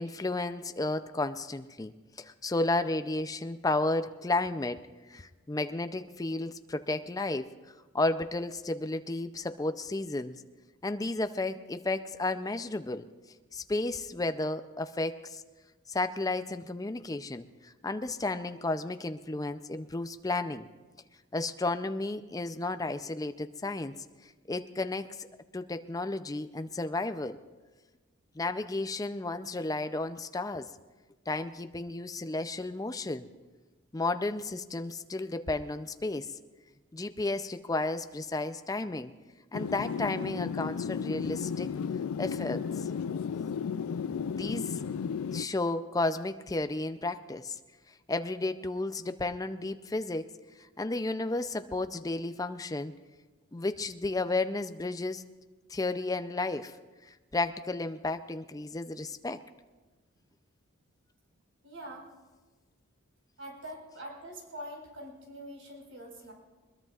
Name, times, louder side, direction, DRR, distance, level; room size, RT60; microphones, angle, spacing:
voice 1, 0.0-1.9 2.2-4.8 5.1-7.5 7.9-10.4 10.8-13.1 13.5-15.4 15.9-20.7 21.3-24.0 24.5-25.3 25.5-27.4 28.4-30.7 31.3-33.3 33.9-36.3 36.9-39.1 39.5-41.7 42.2-42.9 44.2-44.8 45.3-47.6 48.1-50.3 50.8-52.9 53.5-55.2 55.7-56.8 57.1-59.4, left 2 dB, 15° left, 10 dB, 0.4 m, -32 dB
sound 1, 39.5-45.5, left 6 dB, 90° left, 0.4 m, -34 dB
voice 2, 61.6-62.1 63.4-66.3, right 1 dB, 75° right, -1 dB, 4.8 m, -44 dB
21.5 x 21.5 x 2.4 m, 1.3 s
head